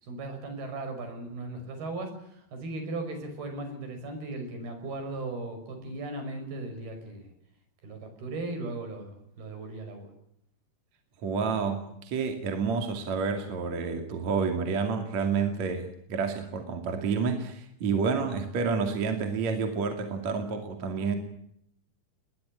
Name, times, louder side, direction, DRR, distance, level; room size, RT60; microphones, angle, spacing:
voice 1, 0.0-7.3 7.8-10.1, right 2 dB, 75° right, 7 dB, 7.8 m, -37 dB
voice 2, 11.2-21.2, right 5 dB, 50° right, 5 dB, 3.5 m, -29 dB
21.5 x 20.5 x 10.0 m, 0.72 s
omnidirectional pair, 4.5 m